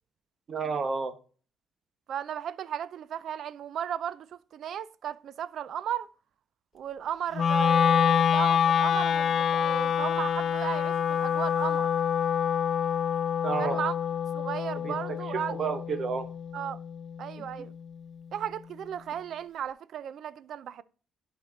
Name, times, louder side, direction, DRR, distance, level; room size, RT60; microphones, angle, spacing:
voice 1, 0.5-1.1 13.4-13.8 14.8-15.2 15.5-16.3 17.6-17.7, right 5 dB, 50° right, 1.3 m, -31 dB
voice 2, 2.1-6.1 6.7-11.9 13.6-13.9 14.3-15.8 16.5-16.8 17.2-17.7 18.3-20.8, right 9 dB, 70° right, 0.4 m, -35 dB
Wind instrument woodwind instrument, 7.3-17.5, left 8 dB, 55° left, 0.4 m, -26 dB
11.0 x 4.4 x 3.8 m
cardioid pair, 90°, 0 cm